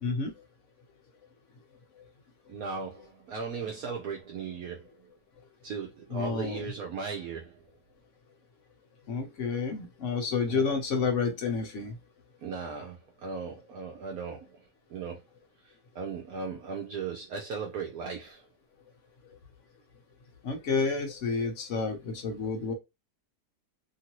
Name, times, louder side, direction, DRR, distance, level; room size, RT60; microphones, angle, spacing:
voice 1, 0.0-0.3 6.1-6.6 9.1-12.0 20.4-22.7, left 4 dB, 55° left, 0.9 m, -30 dB
voice 2, 2.5-4.9 5.6-7.6 10.5-10.6 12.4-15.2 15.9-18.5, right 5 dB, 70° right, 1.0 m, -37 dB
3.0 x 2.6 x 2.9 m
omnidirectional pair, 1.9 m